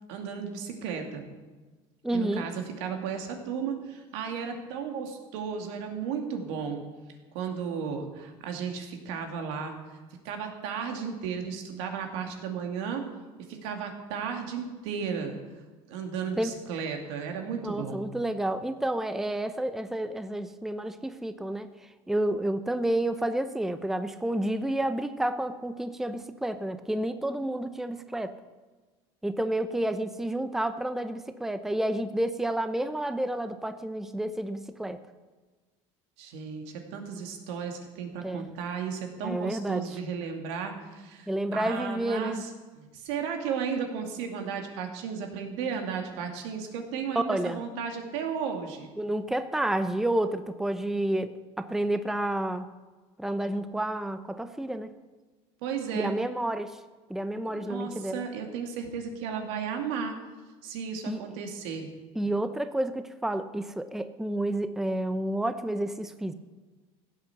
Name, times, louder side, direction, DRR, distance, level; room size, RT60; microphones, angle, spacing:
voice 1, 0.1-1.2 2.1-6.8 7.3-9.7 10.2-13.0 13.5-15.4 15.9-18.0 36.2-42.5 42.8-48.9 55.6-56.1 57.5-60.2 60.6-61.9, right 6 dB, 85° right, 4 dB, 2.4 m, -34 dB
voice 2, 2.0-2.4 16.4-16.5 17.6-21.7 22.1-28.3 29.2-35.0 38.2-38.5 39.2-39.8 41.3-42.4 47.1-47.6 49.0-51.3 51.6-52.7 53.2-54.9 55.9-56.8 57.1-58.2 61.1-61.2 62.2-66.3, right 1 dB, 5° right, 10 dB, 0.7 m, -30 dB
16.0 x 8.3 x 7.0 m, 1.3 s
supercardioid pair, 115°, 14 cm